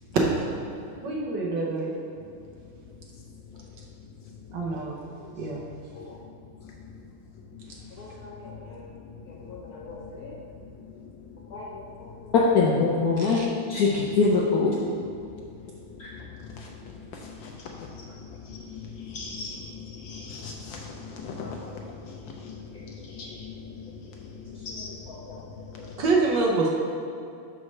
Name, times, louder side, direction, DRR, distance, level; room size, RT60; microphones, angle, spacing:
voice 1, 1.0-1.9 4.5-5.0 5.4-5.7 13.2-13.5 26.0-26.7, right 3 dB, 65° right, -2 dB, 1.4 m, -26 dB
voice 2, 8.0-8.8 9.5-10.3 11.5-13.4 13.7-14.7 16.0-16.1 21.4-21.5 25.1-25.4 25.8-25.9, left 4 dB, 90° left, -3 dB, 0.8 m, -25 dB
voice 3, 18.9-19.6 20.0-21.6 22.4-22.6 23.1-23.5 24.7-24.9, left 4 dB, 70° left, 0 dB, 1.1 m, -38 dB
5.4 x 4.7 x 6.2 m, 2.5 s
omnidirectional pair, 2.4 m